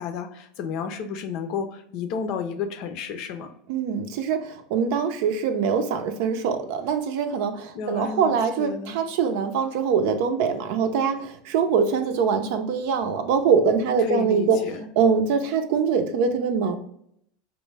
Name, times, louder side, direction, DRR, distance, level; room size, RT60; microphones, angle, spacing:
voice 1, 0.0-3.5 7.7-9.0 14.0-14.8, left 6 dB, 60° left, 7 dB, 0.6 m, -31 dB
voice 2, 3.7-14.6 15.0-16.7, right 6 dB, 65° right, 7 dB, 0.5 m, -23 dB
4.4 x 2.1 x 3.3 m, 0.71 s
hypercardioid pair, 95°, 0 cm